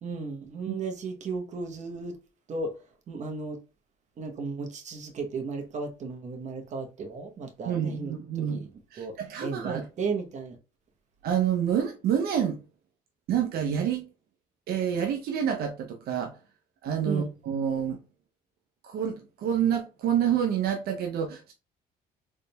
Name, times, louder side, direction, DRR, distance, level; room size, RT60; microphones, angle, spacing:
voice 1, 0.0-2.1 2.5-2.7 3.1-3.6 4.2-8.7 9.0-9.1 9.4-10.6 17.0-17.3, right 4 dB, 45° right, 0.9 m, -35 dB
voice 2, 7.7-8.6 8.9-9.9 11.2-12.6 13.3-14.1 14.7-16.3 16.8-18.0 18.8-21.5, right 9 dB, 70° right, 0.6 m, -28 dB
4.0 x 3.6 x 2.2 m
cardioid pair, 110°, 17 cm